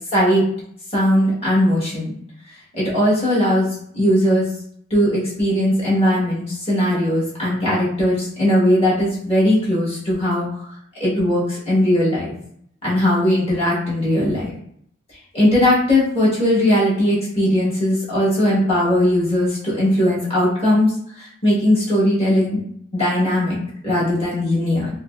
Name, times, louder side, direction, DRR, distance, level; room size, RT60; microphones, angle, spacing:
voice 1, 0.1-0.4 0.9-2.1 2.7-3.7 3.9-4.5 4.9-10.5 11.0-12.3 12.8-14.5 15.3-20.9 21.2-22.6 22.9-23.6 23.8-24.9, left 1 dB, 30° left, -8 dB, 1.2 m, -18 dB
4.9 x 2.1 x 2.3 m, 0.67 s
head